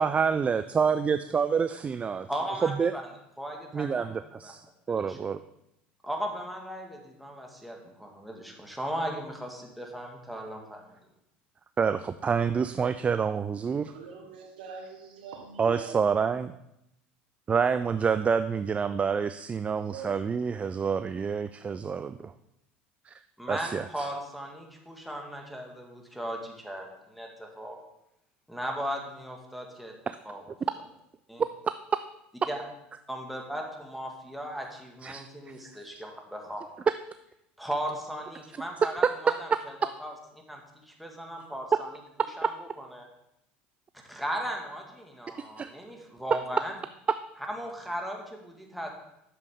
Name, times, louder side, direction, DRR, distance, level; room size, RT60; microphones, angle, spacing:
voice 1, 0.0-2.3 2.6-2.9 3.7-5.4 11.8-13.9 15.6-16.5 17.5-22.3 23.1-23.2 23.5-24.1 35.0-35.2 39.0-39.1 45.4-45.7, right 6 dB, 25° right, 12 dB, 0.3 m, -27 dB
voice 2, 2.3-3.0 3.4-4.1 4.4-4.5 4.9-5.2 6.0-10.9 23.4-27.8 28.5-29.9 30.2-30.4 31.3-31.4 32.5-32.6 33.1-36.6 37.6-40.1 40.5-41.9 42.4-42.5 42.8-43.0 44.1-46.7 47.5-48.9, equal, ahead, 0 dB, 1.7 m, -37 dB
voice 3, 13.9-16.0 19.8-20.2, right 5 dB, 85° right, 3 dB, 1.4 m, -43 dB
8.5 x 6.7 x 3.6 m, 0.82 s
hypercardioid pair, 85°, 5 cm